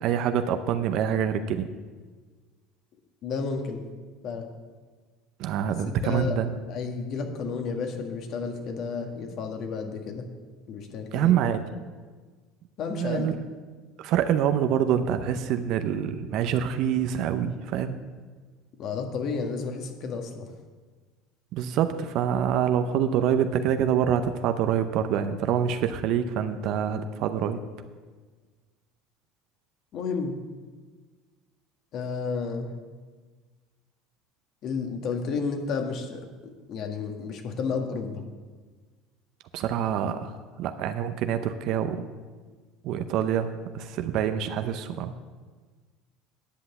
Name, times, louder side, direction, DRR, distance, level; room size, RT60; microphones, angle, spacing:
voice 1, 0.0-1.7 5.4-6.6 11.1-11.6 12.9-13.4 14.0-18.0 21.5-27.6 39.5-42.0 42.8-45.1, right 9 dB, 60° right, 8 dB, 0.7 m, -26 dB
voice 2, 3.2-3.8 4.2-4.5 5.7-6.4 6.7-10.3 10.7-11.3 12.8-13.3 18.8-20.5 29.9-30.4 31.9-32.7 34.6-36.3 36.7-38.2, left 5 dB, 55° left, 4 dB, 1.6 m, -31 dB
10.0 x 5.6 x 8.2 m, 1.4 s
supercardioid pair, 110°, 0 cm